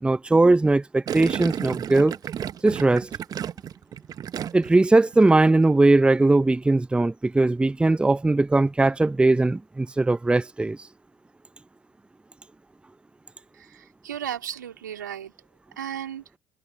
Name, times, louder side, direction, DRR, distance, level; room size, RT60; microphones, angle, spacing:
voice 1, 0.0-2.2 2.6-3.1 4.5-10.8, right 2 dB, 10° right, 0.8 m, -19 dB
Gurgling, 1.1-4.9 5.1-5.5, right 9 dB, 40° right, 1.5 m, -32 dB
voice 2, 13.5-15.5 15.8-16.2, right 10 dB, 75° right, 3.1 m, -35 dB
figure-of-eight pair, 60°, 10 cm